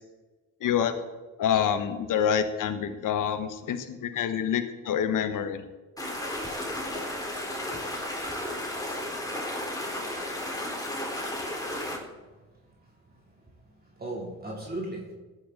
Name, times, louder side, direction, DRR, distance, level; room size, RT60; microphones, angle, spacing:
voice 1, 0.6-0.9 1.4-5.6, left 8 dB, 70° left, 9 dB, 1.4 m, -27 dB
sound 1, 6.0-12.0, left 1 dB, 10° left, 4.1 m, -33 dB
voice 2, 11.3-11.9 12.8-13.3 14.0-15.1, right 1 dB, 30° right, -2 dB, 3.3 m, -38 dB
15.0 x 10.0 x 4.0 m, 1.2 s
supercardioid pair, 60°, 33 cm